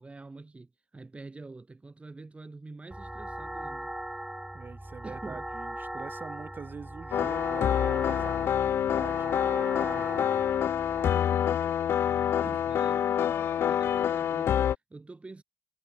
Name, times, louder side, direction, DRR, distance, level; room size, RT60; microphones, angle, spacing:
voice 1, 0.0-3.9 5.0-5.5 12.0-15.4, right 3 dB, 30° right, 4.9 m, -47 dB
sound 1, 2.9-11.1, right 1 dB, 10° right, 1.1 m, -39 dB
voice 2, 4.5-10.5 12.4-12.6, right 5 dB, 50° right, 5.5 m, -45 dB
sound 2, 7.1-14.7, left 9 dB, 75° left, 0.7 m, -27 dB
cardioid pair, 65°, 4 cm